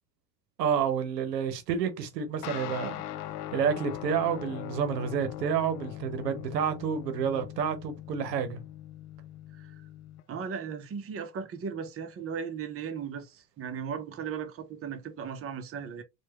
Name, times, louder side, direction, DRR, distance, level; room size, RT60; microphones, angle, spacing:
voice 1, 0.6-3.0 3.5-8.6, right 7 dB, 80° right, 0.9 m, -29 dB
sound 1, 2.4-10.2, left 13 dB, 65° left, 0.6 m, -40 dB
voice 2, 10.3-16.0, right 6 dB, 30° right, 0.8 m, -37 dB
4.5 x 2.4 x 3.0 m
figure-of-eight pair, 65°, 49 cm